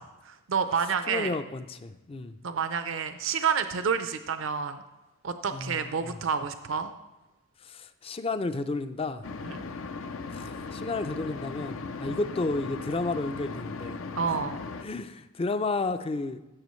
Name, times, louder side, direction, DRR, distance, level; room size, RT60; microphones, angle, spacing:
voice 1, 0.0-1.3 2.4-4.8 5.2-6.9 9.4-9.6 12.1-12.2 14.2-14.6, right 6 dB, 65° right, 9 dB, 0.6 m, -29 dB
voice 2, 1.1-2.4 5.5-6.1 7.6-9.3 10.3-14.0 14.8-16.4, left 3 dB, 25° left, 11 dB, 0.4 m, -32 dB
sound 1, 9.2-14.8, left 4 dB, 75° left, 0.6 m, -37 dB
14.5 x 6.9 x 3.1 m, 1.0 s
head